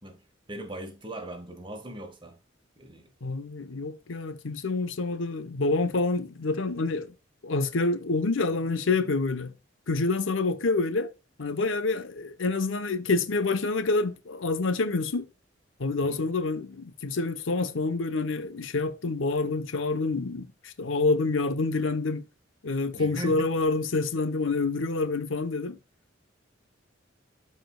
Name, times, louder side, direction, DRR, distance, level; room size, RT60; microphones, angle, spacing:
voice 1, 0.5-2.4 2.8-3.1 16.0-16.3 22.9-23.5, right 1 dB, 25° right, 1.4 m, -39 dB
voice 2, 3.2-7.1 7.4-9.5 9.9-11.1 11.4-15.3 15.8-22.2 22.6-25.8, left 3 dB, 85° left, 0.9 m, -27 dB
13.0 x 4.4 x 2.2 m
head